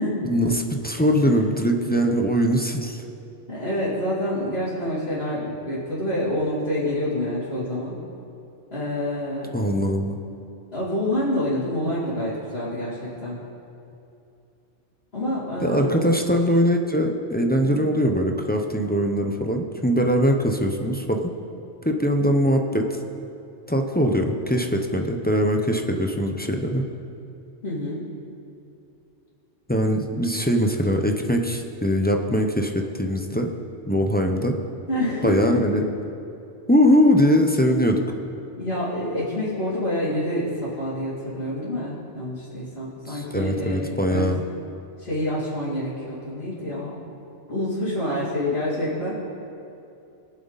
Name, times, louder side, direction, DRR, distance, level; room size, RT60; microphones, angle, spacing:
voice 1, 0.2-3.0 9.5-10.2 15.6-21.3 21.8-22.9 23.7-26.8 29.7-33.5 33.9-34.5 35.2-35.8 36.7-38.0 43.1-44.4, equal, 10° left, 3 dB, 0.6 m, -21 dB
voice 2, 1.0-1.4 3.5-8.0 8.7-9.5 10.7-13.4 15.1-16.1 17.6-17.8 27.6-28.0 34.9-35.6 38.6-44.3 45.0-46.9 47.5-49.2, left 1 dB, 55° left, -13 dB, 3.0 m, -27 dB
22.0 x 7.5 x 4.1 m, 2.7 s
omnidirectional pair, 1.2 m